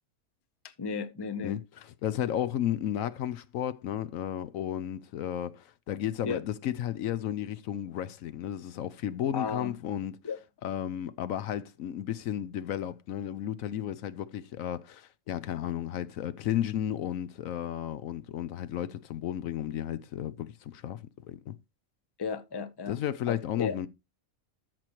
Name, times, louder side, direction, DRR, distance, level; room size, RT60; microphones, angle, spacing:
voice 1, 0.8-1.6 6.2-6.4 9.3-9.7 10.2-10.4 22.2-23.0 23.3-23.8, left 5 dB, 25° left, 0.6 m, -34 dB
voice 2, 2.0-10.2 10.6-21.5 22.9-23.9, left 11 dB, 75° left, 1.0 m, -33 dB
13.5 x 6.0 x 2.9 m
omnidirectional pair, 1.5 m